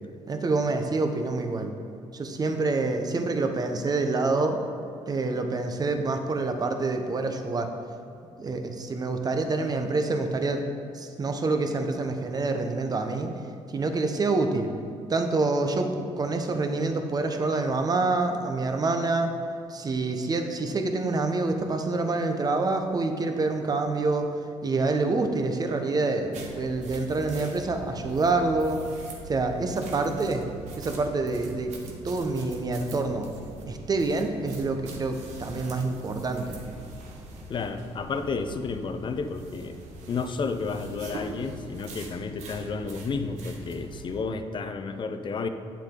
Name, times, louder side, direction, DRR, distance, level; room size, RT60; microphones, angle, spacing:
voice 1, 0.3-1.7 2.1-4.6 5.1-7.7 8.4-10.6 10.9-13.3 13.7-14.7 15.1-19.3 19.7-24.3 24.6-28.8 29.3-30.4 30.8-33.3 33.7-36.5, right 3 dB, 35° right, 5 dB, 1.0 m, -27 dB
sound 1, 26.3-44.2, right 2 dB, 80° right, 1.3 m, -42 dB
voice 2, 37.5-39.8 40.1-45.5, left 4 dB, 45° left, 8 dB, 0.7 m, -31 dB
9.1 x 7.4 x 3.8 m, 2.6 s
cardioid pair, 90°, 12 cm